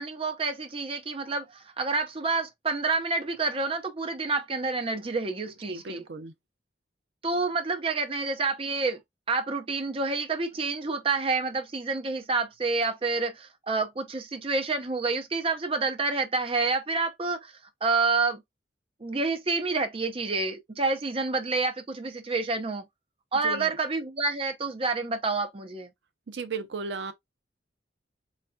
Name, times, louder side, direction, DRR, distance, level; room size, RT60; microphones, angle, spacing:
voice 1, 0.0-6.0 7.2-9.0 9.3-17.5 17.8-18.4 19.0-22.9 23.3-25.9, right 3 dB, 30° right, 0.7 m, -28 dB
voice 2, 5.7-6.3 23.4-23.8 26.3-27.1, right 4 dB, 75° right, 0.6 m, -35 dB
4.1 x 3.3 x 2.2 m
head